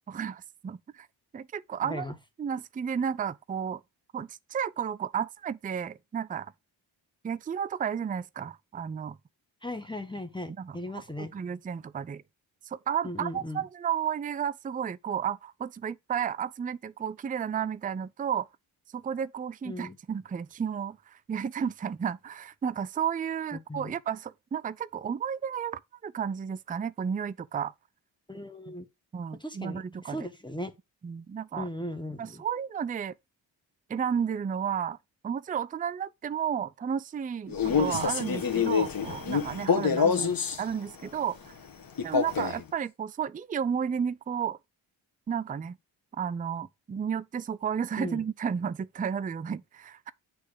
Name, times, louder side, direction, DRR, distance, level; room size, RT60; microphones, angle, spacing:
voice 1, 0.1-1.1 1.3-2.1 2.4-3.8 4.1-6.5 7.2-9.2 10.6-12.2 12.7-18.5 18.9-27.7 29.1-30.3 31.0-31.7 32.2-33.1 33.9-35.0 35.2-40.3 40.6-41.5 42.0-44.6 45.3-45.8 46.2-50.1, right 7 dB, 20° right, 0.4 m, -32 dB
voice 2, 1.8-2.1 9.6-11.3 13.0-13.6 19.6-20.0 23.5-23.9 28.3-28.9 29.4-30.7 31.6-32.4 40.0-40.3 48.0-48.2, left 1 dB, 10° left, 1.2 m, -37 dB
Male speech man speaking, 37.5-40.6 42.0-42.6, left 6 dB, 45° left, 1.3 m, -26 dB
8.5 x 3.2 x 4.9 m
supercardioid pair, 45°, 49 cm